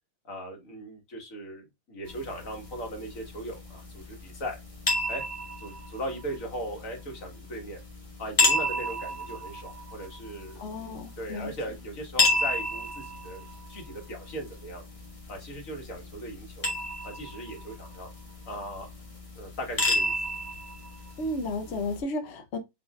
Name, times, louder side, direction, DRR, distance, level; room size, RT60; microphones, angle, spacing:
voice 1, 0.2-4.6 5.1-5.2 5.6-7.8 8.2-13.4 13.7-14.8 15.3-16.7 17.0-18.1 18.4-18.9 19.3-20.1, right 1 dB, 45° left, 1.7 m, -38 dB
sound 1, 2.0-22.0, left 2 dB, 30° left, 0.7 m, -33 dB
voice 2, 10.6-11.5 21.2-22.6, left 2 dB, 70° left, 0.6 m, -33 dB
5.1 x 3.9 x 2.3 m
omnidirectional pair, 2.1 m